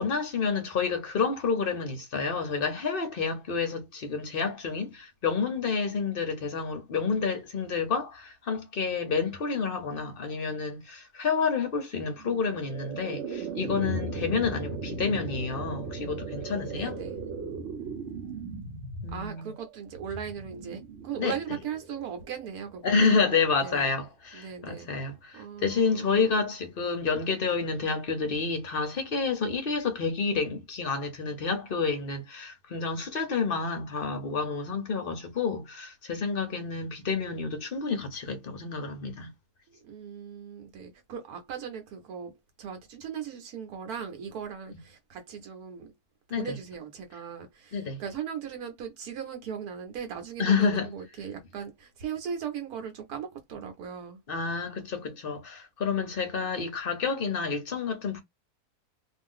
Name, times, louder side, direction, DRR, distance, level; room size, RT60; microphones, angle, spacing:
voice 1, 0.0-17.0 19.0-19.5 21.2-21.3 22.8-39.3 46.3-46.6 47.7-48.0 50.4-50.9 54.3-58.2, left 5 dB, 50° left, 0.7 m, -29 dB
sound 1, 12.2-23.3, right 3 dB, 60° right, 0.9 m, -38 dB
voice 2, 16.7-17.2 19.1-23.2 23.6-23.9 24.3-24.9 25.3-26.5 39.8-45.9 46.4-54.2 56.4-56.6, right 7 dB, 75° right, 1.1 m, -38 dB
2.5 x 2.5 x 3.5 m
omnidirectional pair, 1.6 m